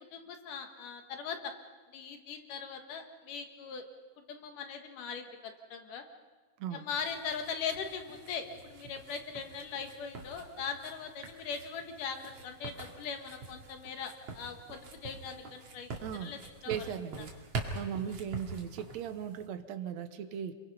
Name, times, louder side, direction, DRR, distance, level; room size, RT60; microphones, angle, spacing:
voice 1, 0.1-1.5 1.9-3.8 4.3-6.0 6.7-15.9 16.2-16.8 18.1-18.2, left 6 dB, 70° left, 5 dB, 3.1 m, -40 dB
sound 1, 6.9-19.5, right 3 dB, 50° right, 3.1 m, -45 dB
voice 2, 16.0-16.3 16.7-17.3 17.7-20.5, right 9 dB, 65° right, 9 dB, 2.0 m, -38 dB
27.5 x 23.0 x 5.5 m, 1.3 s
omnidirectional pair, 3.9 m